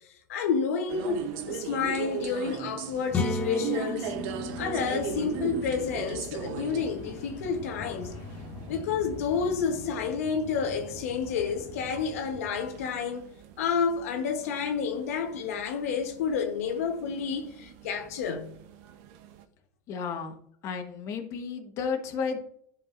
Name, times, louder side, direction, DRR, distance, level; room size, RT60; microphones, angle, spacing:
voice 1, 0.3-4.1 4.6-8.1 8.7-13.2 13.6-18.6, left 6 dB, 80° left, 1.1 m, -30 dB
sound 1, 0.9-19.4, right 8 dB, 60° right, 0.8 m, -40 dB
sound 2, 3.1-6.9, left 2 dB, 20° left, 0.8 m, -34 dB
sound 3, 4.0-13.0, left 3 dB, 60° left, 2.2 m, -43 dB
voice 2, 19.9-20.3 20.6-22.4, left 5 dB, 40° left, 1.2 m, -32 dB
11.0 x 4.8 x 2.5 m
supercardioid pair, 130°, 8 cm